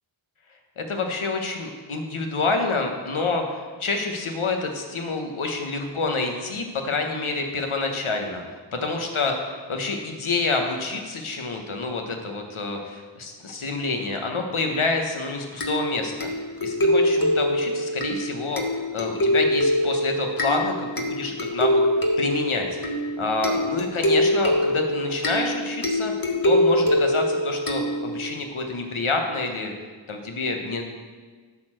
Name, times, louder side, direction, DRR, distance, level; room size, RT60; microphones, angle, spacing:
voice 1, 0.8-16.3 16.6-18.6 18.9-21.8 22.2-22.7 23.2-26.1 26.4-29.7 30.1-30.8, left 3 dB, 85° left, 3 dB, 1.3 m, -28 dB
sound 1, 15.6-28.4, left 1 dB, 45° left, 1.5 m, -24 dB
10.5 x 4.4 x 7.5 m, 1.5 s
cardioid pair, 40°, 48 cm